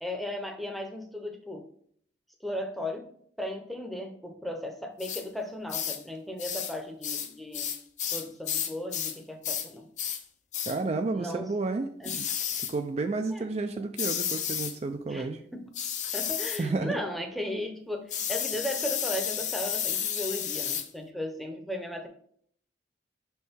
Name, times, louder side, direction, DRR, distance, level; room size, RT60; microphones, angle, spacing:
voice 1, 0.0-1.7 2.4-3.1 3.4-7.7 8.1-9.9 11.1-11.5 12.0-12.1 13.3-13.5 15.1-15.6 16.1-22.1, left 1 dB, ahead, 3 dB, 0.7 m, -36 dB
sound 1, 5.0-5.2 5.7-6.0 6.4-6.8 7.0-9.2 9.4-9.7 10.0-10.2 10.5-10.8 12.0-12.8 14.0-14.8 15.7-16.6 18.1-20.9, left 9 dB, 45° left, 0.5 m, -32 dB
voice 2, 10.7-12.3 12.5-15.4 16.6-17.0, right 3 dB, 35° right, 6 dB, 0.3 m, -31 dB
6.2 x 4.4 x 3.6 m, 0.62 s
head